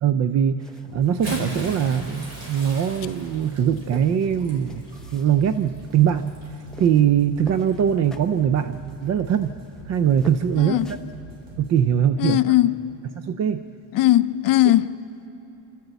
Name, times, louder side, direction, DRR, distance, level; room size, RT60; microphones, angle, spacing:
voice 1, 0.0-4.8 5.1-6.3 6.8-9.6 9.9-10.8 11.6-12.4 13.2-13.6, right 9 dB, 40° right, 11 dB, 0.4 m, -21 dB
sound 1, 0.6-11.2, left 2 dB, ahead, 0.7 m, -48 dB
sound 2, 0.8-11.8, right 2 dB, 85° right, 5.5 m, -44 dB
Bathtub (filling or washing) / Splash splatter, 1.0-6.7 7.6-7.8 9.2-9.3, right 1 dB, 65° right, 5.5 m, -37 dB
voice 2, 10.6-10.9 12.2-13.0 13.9-14.9, left 15 dB, 45° left, 11 dB, 0.6 m, -19 dB
25.5 x 13.5 x 8.0 m, 2.9 s
cardioid pair, 150°, 46 cm